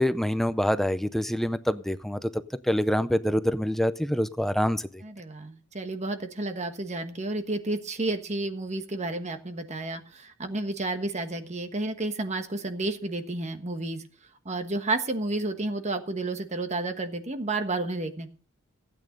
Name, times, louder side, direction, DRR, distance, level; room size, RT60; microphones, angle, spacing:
voice 1, 0.0-5.0, equal, ahead, 0.5 m, -26 dB
voice 2, 5.0-14.0 14.4-18.3, right 2 dB, 35° right, 1.3 m, -31 dB
16.0 x 9.0 x 5.2 m
head